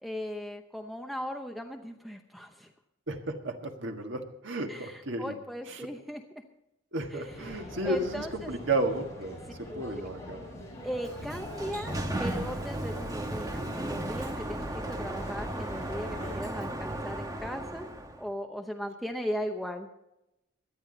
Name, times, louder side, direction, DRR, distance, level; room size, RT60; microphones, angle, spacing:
voice 1, 0.0-2.7 4.7-6.2 7.1-8.5 9.7-9.8 10.8-17.9 18.2-19.9, equal, ahead, 3 dB, 0.8 m, -38 dB
voice 2, 3.1-5.3 5.7-5.8 6.9-10.5, right 2 dB, 65° right, 4 dB, 1.6 m, -33 dB
sound 1, 7.3-16.4, left 1 dB, 15° left, 5.8 m, -44 dB
Sliding door, 10.8-18.2, right 1 dB, 20° right, 1.2 m, -35 dB
17.5 x 11.5 x 4.0 m, 0.89 s
head